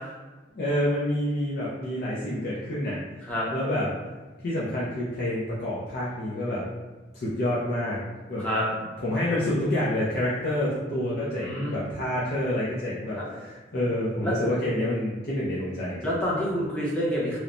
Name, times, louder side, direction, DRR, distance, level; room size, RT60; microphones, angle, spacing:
voice 1, 0.5-3.0 3.5-3.9 4.4-6.6 7.1-8.0 8.3-8.4 9.0-16.1, left 1 dB, 55° left, -8 dB, 0.5 m, -28 dB
voice 2, 11.0-11.8 13.2-13.3 14.2-14.3 16.0-17.4, equal, 5° left, -7 dB, 0.6 m, -28 dB
3.0 x 2.0 x 2.5 m, 1.2 s
head